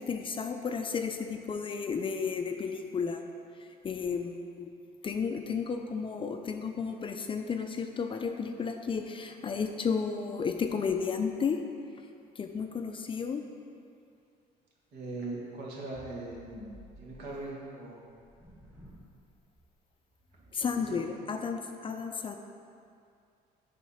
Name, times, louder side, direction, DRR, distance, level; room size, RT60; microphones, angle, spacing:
voice 1, 0.0-3.2 3.8-4.7 5.0-11.6 12.4-13.4 20.5-22.4, left 5 dB, 30° left, 5 dB, 0.5 m, -33 dB
voice 2, 14.9-16.4 16.9-18.0 20.5-21.0, right 2 dB, 70° right, -4 dB, 1.7 m, -40 dB
sound 1, 15.9-17.5 18.2-19.2 19.5-19.7 20.1-21.0, left 1 dB, 5° right, 1.1 m, -50 dB
7.5 x 3.8 x 5.6 m, 2.4 s
cardioid pair, 110°, 17 cm